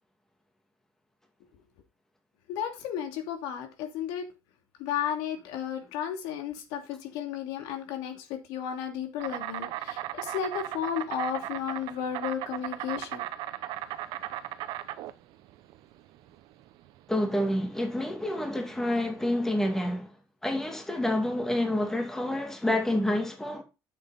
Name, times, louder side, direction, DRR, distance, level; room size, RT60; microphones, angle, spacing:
voice 1, 2.5-4.2 4.8-13.2, left 9 dB, 90° left, 2.8 m, -33 dB
Insect, 9.2-19.2, right 13 dB, 70° right, 1.0 m, -37 dB
voice 2, 17.1-20.1 20.4-23.6, left 1 dB, 5° left, 2.3 m, -28 dB
10.0 x 7.7 x 4.2 m
cardioid pair, 145°, 8 cm